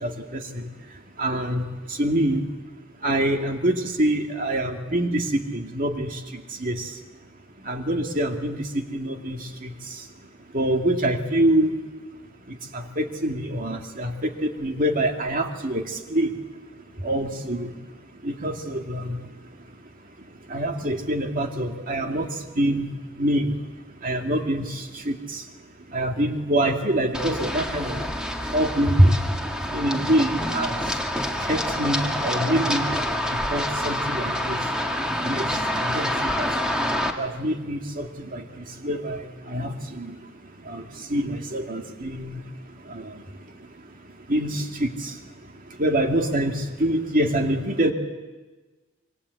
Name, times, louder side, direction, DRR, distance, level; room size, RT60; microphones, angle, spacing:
voice 1, 0.0-0.7 1.2-1.7 2.0-2.4 3.0-6.9 7.7-9.7 10.5-11.7 12.5-15.8 16.1-16.3 17.0-17.7 18.2-19.2 20.5-22.3 22.6-22.9 23.2-23.5 24.0-25.4 25.9-28.0 28.5-29.3 29.7-30.8 31.5-32.9 33.3-34.6 35.2-35.5 35.8-36.5 37.2-39.2 39.5-40.2 40.7-40.8 41.1-42.4 42.9-43.1 44.3-45.1 45.8-47.9, right 1 dB, 40° right, 3 dB, 2.4 m, -25 dB
Run, 27.1-37.1, equal, 5° right, 1.9 m, -27 dB
26.5 x 25.0 x 8.4 m, 1.3 s
head